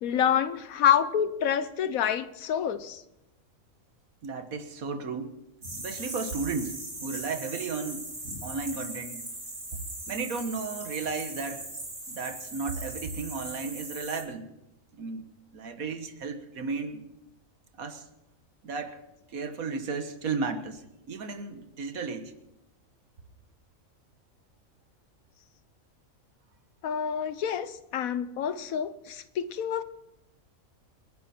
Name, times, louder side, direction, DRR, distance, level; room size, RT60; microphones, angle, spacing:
voice 1, 0.0-3.0 26.8-29.8, left 9 dB, 85° left, 13 dB, 1.2 m, -27 dB
voice 2, 4.2-5.3 5.7-8.1 8.4-9.3 10.1-11.7 12.1-14.5 15.0-15.3 15.5-17.0 17.8-18.1 18.6-19.0 19.3-22.5, right 4 dB, 90° right, 8 dB, 1.8 m, -34 dB
sound 1, 5.6-14.2, right 2 dB, 60° right, 4.0 m, -39 dB
28.5 x 11.0 x 4.4 m, 0.87 s
omnidirectional pair, 1.4 m